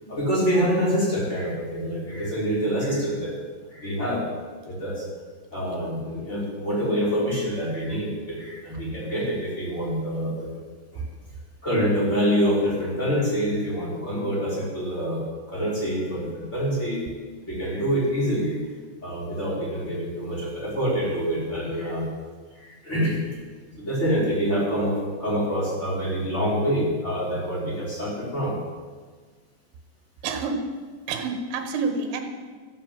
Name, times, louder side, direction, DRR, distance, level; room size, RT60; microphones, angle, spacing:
voice 1, 0.0-3.3 3.7-4.2 4.6-5.1 5.5-10.5 10.9-11.0 11.6-17.1 17.4-18.6 19.0-22.0 22.5-23.3 23.8-28.6 30.3-30.4, equal, 15° left, -6 dB, 4.7 m, -26 dB
voice 2, 30.2-30.6 31.1-32.2, right 4 dB, 75° right, 6 dB, 3.7 m, -28 dB
13.5 x 10.0 x 7.7 m, 1.5 s
omnidirectional pair, 5.9 m